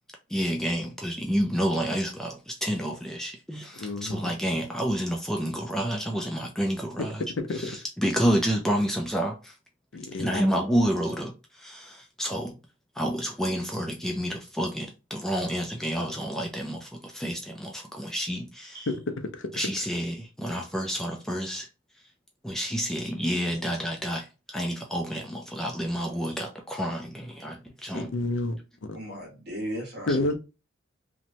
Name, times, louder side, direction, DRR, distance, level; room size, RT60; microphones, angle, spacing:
voice 1, 0.3-7.2 7.5-9.6 10.2-12.6 13.0-18.9 19.5-21.7 22.4-28.1, equal, ahead, 0.3 m, -29 dB
voice 2, 3.7-4.2 7.4-7.8 9.9-10.4 18.9-19.5 27.9-29.0 30.1-30.4, left 2 dB, 70° left, 0.5 m, -30 dB
voice 3, 22.9-23.3 26.3-26.4 28.9-30.4, equal, 55° right, 1.3 m, -38 dB
3.0 x 2.1 x 2.7 m
head